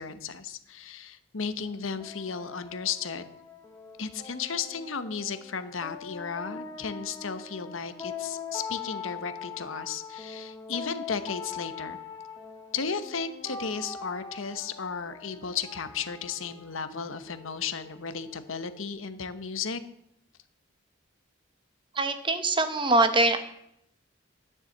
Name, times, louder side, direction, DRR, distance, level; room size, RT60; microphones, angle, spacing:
voice 1, 0.0-3.3 4.0-12.0 12.7-19.8, left 6 dB, 85° left, 11 dB, 1.0 m, -34 dB
sound 1, 1.4-18.9, left 6 dB, 20° left, 1.3 m, -42 dB
voice 2, 22.0-23.4, right 2 dB, 25° right, 9 dB, 1.0 m, -23 dB
10.0 x 7.2 x 7.8 m, 0.76 s
head